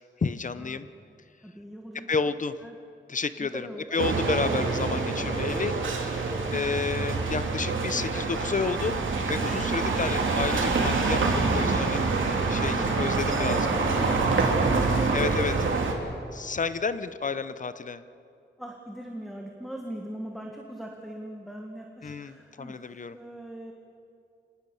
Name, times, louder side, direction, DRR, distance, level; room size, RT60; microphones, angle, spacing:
voice 1, 0.2-0.9 1.9-2.5 3.1-9.0 9.3-12.0 12.5-13.7 15.1-15.7 16.3-18.0 22.0-23.2, left 4 dB, 40° left, 13 dB, 0.7 m, -31 dB
voice 2, 1.4-2.3 2.6-2.7 3.4-3.9 9.5-9.8 13.3-15.4 18.6-23.7, right 1 dB, ahead, 1 dB, 1.8 m, -41 dB
sound 1, 4.0-15.9, right 3 dB, 90° right, 3.0 m, -26 dB
26.0 x 19.0 x 7.1 m, 2.6 s
wide cardioid pair, 155°, 20 cm